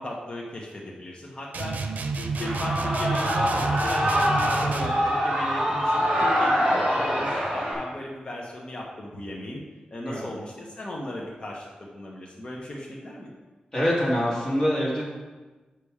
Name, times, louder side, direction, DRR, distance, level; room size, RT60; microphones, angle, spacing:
voice 1, 0.0-1.8 2.1-9.6 9.9-13.4, left 1 dB, 35° left, -3 dB, 1.0 m, -36 dB
sound 1, 1.5-5.0, right 4 dB, 80° right, 0.6 m, -30 dB
Shout / Cheering, 2.3-7.7, equal, 50° right, 2.9 m, -24 dB
voice 2, 13.7-15.0, equal, 20° left, -7 dB, 2.6 m, -24 dB
7.2 x 5.9 x 4.9 m, 1.2 s
wide cardioid pair, 170°, 3 cm